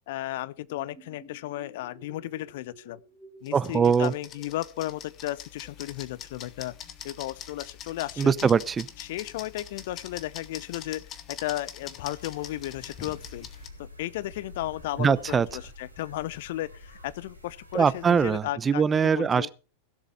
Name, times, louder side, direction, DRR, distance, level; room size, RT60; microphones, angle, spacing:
voice 1, 0.1-3.0 3.4-6.7 7.0-8.3 9.0-13.5 13.8-19.5, left 15 dB, 50° left, 0.6 m, -34 dB
sound 1, 0.6-5.9, equal, 5° left, 3.8 m, -52 dB
sound 2, 3.4-13.7, left 9 dB, 30° left, 1.6 m, -43 dB
voice 2, 3.5-4.1 8.2-8.8 15.0-15.5 17.7-19.5, right 6 dB, 20° right, 0.5 m, -22 dB
sound 3, 12.1-18.4, left 1 dB, 90° right, 3.4 m, -48 dB
16.5 x 7.4 x 5.7 m
figure-of-eight pair, 90°, 0 cm